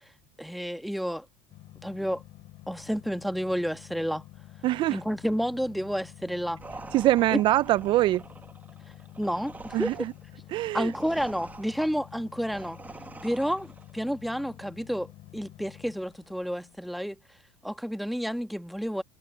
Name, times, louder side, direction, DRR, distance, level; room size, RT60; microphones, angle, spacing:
voice 1, 0.4-1.2 1.8-2.2 2.7-4.2 4.9-6.6 7.3-7.4 9.2-9.9 10.7-12.8 13.2-17.2 17.6-19.0, equal, ahead, 1.5 m, -30 dB
sound 1, 1.5-16.8, left 16 dB, 55° left, 2.8 m, -49 dB
voice 2, 4.6-5.0 6.9-8.2 9.7-10.1 10.5-10.9, right 15 dB, 50° right, 0.5 m, -23 dB
sound 2, 6.6-14.0, right 3 dB, 15° right, 1.9 m, -45 dB
supercardioid pair, 95°, 11 cm